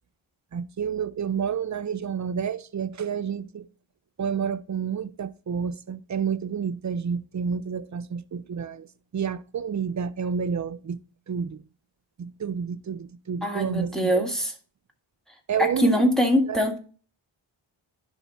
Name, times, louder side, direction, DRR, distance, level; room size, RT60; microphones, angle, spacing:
voice 1, 0.5-3.7 4.2-8.9 9.1-11.0 11.3-11.6 12.2-14.3 15.5-16.6, right 7 dB, 40° right, 0.4 m, -30 dB
voice 2, 13.4-14.5 15.6-16.8, equal, ahead, 1.7 m, -23 dB
10.5 x 3.6 x 4.1 m
wide cardioid pair, 65°, 50 cm